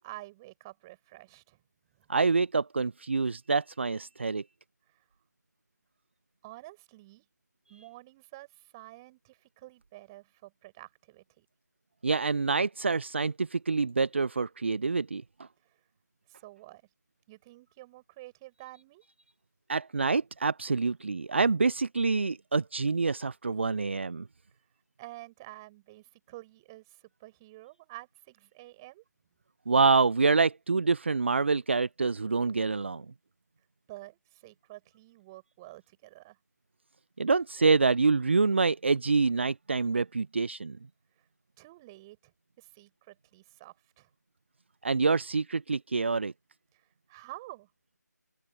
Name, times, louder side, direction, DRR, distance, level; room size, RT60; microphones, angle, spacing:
voice 1, 0.0-1.6 4.9-5.0 6.4-7.2 7.7-11.5 15.6-15.8 16.3-16.8 17.3-19.0 25.0-29.0 33.9-36.4 41.6-44.1 46.7-47.7, right 19 dB, 15° right, 5.5 m, -49 dB
voice 2, 2.1-4.4 12.0-15.2 19.7-24.2 29.7-33.0 37.2-40.8 44.8-46.3, right 4 dB, 40° right, 0.7 m, -26 dB
open air
figure-of-eight pair, 160°, 10 cm